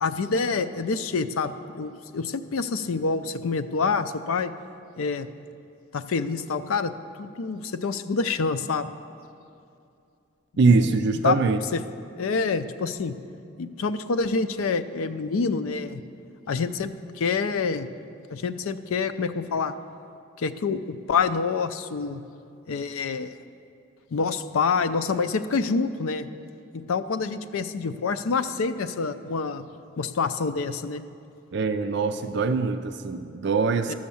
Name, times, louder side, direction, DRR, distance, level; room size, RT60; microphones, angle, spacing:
voice 1, 0.0-4.5 5.0-5.3 5.9-6.9 7.2-8.9 10.7-11.4 11.7-11.8 12.2-13.1 13.6-16.0 16.5-16.9 17.2-17.9 18.3-19.7 20.4-22.2 22.7-23.4 24.1-26.3 26.7-29.7 30.0-31.0 33.9-34.0, left 4 dB, 85° left, 10 dB, 0.5 m, -27 dB
voice 2, 10.6-11.6 31.5-33.9, right 4 dB, 55° right, 8 dB, 0.4 m, -23 dB
13.0 x 6.4 x 7.0 m, 2.5 s
head